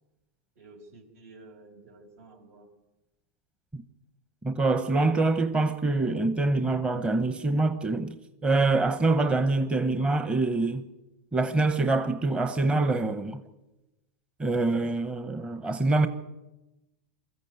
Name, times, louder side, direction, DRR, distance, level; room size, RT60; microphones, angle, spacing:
voice 1, 0.6-2.7, right 2 dB, 75° right, 5.8 m, -51 dB
voice 2, 4.4-8.2 8.4-10.8 11.3-13.4 14.4-16.1, right 3 dB, 15° right, 1.0 m, -25 dB
22.0 x 14.5 x 9.4 m
hypercardioid pair, 125°, 8 cm